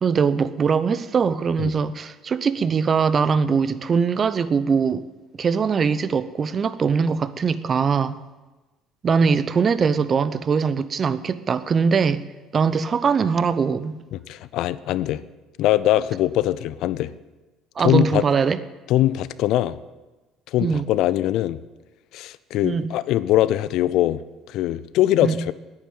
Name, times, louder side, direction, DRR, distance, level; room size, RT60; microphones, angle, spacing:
voice 1, 0.0-5.1 5.4-8.2 9.0-12.2 12.5-13.9 17.8-18.6 20.6-20.9 22.6-22.9 25.2-25.4, right 5 dB, 40° right, 0.7 m, -21 dB
voice 2, 14.1-15.2 15.6-17.1 17.8-18.2 18.9-19.8 20.5-21.6 22.1-24.2 24.5-25.5, left 14 dB, 65° left, 0.5 m, -22 dB
10.5 x 9.8 x 9.1 m
hypercardioid pair, 60°, 0 cm